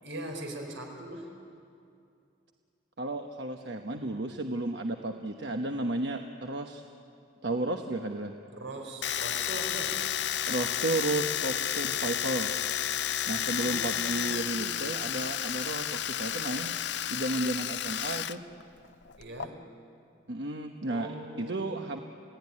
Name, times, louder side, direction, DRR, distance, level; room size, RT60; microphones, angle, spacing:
voice 1, 0.0-1.3 8.5-10.1 13.5-15.0 19.2-19.7 20.9-21.9, right 1 dB, 85° right, 2 dB, 4.8 m, -42 dB
voice 2, 3.0-6.8 7.4-8.3 10.5-12.5 13.3-16.8 17.1-18.4 20.3-22.0, right 2 dB, 65° right, 4 dB, 1.1 m, -33 dB
Domestic sounds home sounds, 9.0-18.4 18.6-19.5, left 10 dB, 65° left, 0.6 m, -31 dB
30.0 x 17.0 x 9.9 m, 2.5 s
head